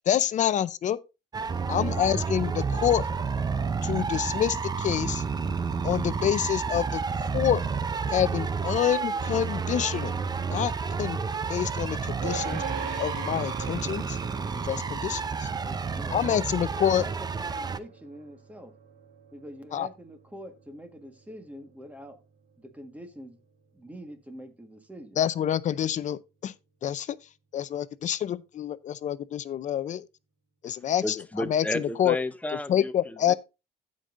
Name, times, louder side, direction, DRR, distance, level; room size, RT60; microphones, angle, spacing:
voice 1, 0.1-1.0 1.7-3.1 3.8-5.2 5.8-7.6 8.1-10.1 10.5-10.7 11.0-11.2 11.5-12.6 13.0-14.2 14.6-15.5 16.1-17.0 19.7-19.9 25.2-26.5 26.8-30.1 30.6-32.2 32.7-33.3, left 10 dB, 45° left, 0.6 m, -27 dB
sound 1, 1.3-17.8, right 5 dB, 25° right, 0.6 m, -30 dB
voice 2, 1.5-2.1 15.6-16.4 17.0-17.1 17.4-18.7 19.3-22.2 22.6-23.4 23.7-25.2, equal, 10° right, 1.5 m, -45 dB
sound 2, 12.2-23.5, right 6 dB, 85° right, 2.1 m, -43 dB
voice 3, 31.0-33.3, left 1 dB, 10° left, 0.8 m, -32 dB
16.0 x 5.4 x 2.6 m
cardioid pair, 110°, 17 cm